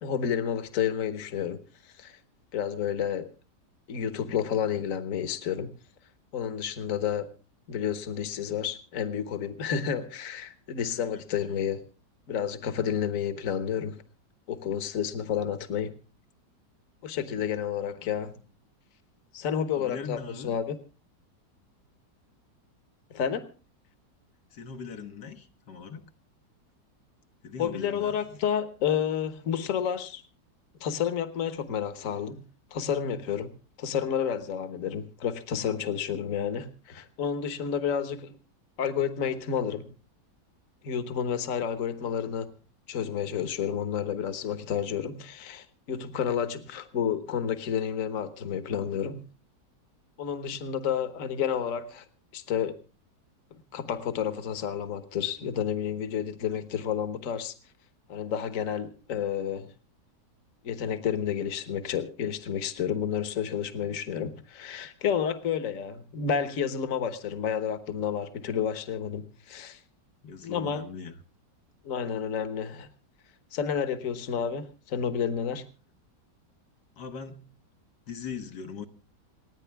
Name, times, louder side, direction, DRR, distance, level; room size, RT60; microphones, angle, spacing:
voice 1, 0.0-2.2 2.5-3.3 3.9-5.7 6.3-7.3 7.7-11.8 12.3-14.0 14.5-15.9 17.0-18.3 19.3-20.8 23.1-23.5 27.6-30.2 30.8-32.5 32.7-38.4 38.8-39.9 40.8-42.5 42.9-49.3 50.2-52.1 52.3-52.8 53.5-57.5 58.1-59.7 60.6-69.8 70.4-70.8 71.8-72.9 73.5-75.7, left 8 dB, 55° left, 1.5 m, -30 dB
voice 2, 10.9-11.2 18.0-18.1 19.8-20.6 24.5-26.1 27.4-28.2 70.2-71.1 77.0-77.6 78.1-78.8, left 5 dB, 75° left, 1.7 m, -40 dB
28.0 x 9.8 x 3.4 m
omnidirectional pair, 1.8 m